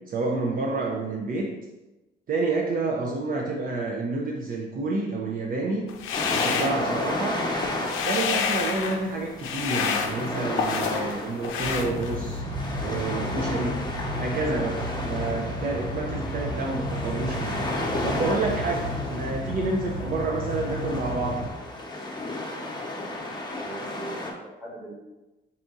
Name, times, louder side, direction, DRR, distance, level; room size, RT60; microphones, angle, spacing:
voice 1, 0.1-1.5 2.3-5.9 6.3-7.4 8.0-12.5 12.8-13.8 14.2-17.6 18.0-21.4, right 3 dB, 45° right, 0 dB, 0.5 m, -29 dB
sound 1, 5.9-7.3 7.6-9.0 9.4-11.1 11.4-12.4, left 6 dB, 85° left, 0.5 m, -28 dB
sound 2, 6.1-24.3, left 2 dB, 20° left, 0.9 m, -33 dB
sound 3, 11.6-21.5, equal, 80° right, 0.8 m, -33 dB
voice 2, 23.5-24.9, right 2 dB, 10° right, -2 dB, 1.1 m, -40 dB
4.1 x 2.6 x 3.5 m, 1.1 s
cardioid pair, 90°, 20 cm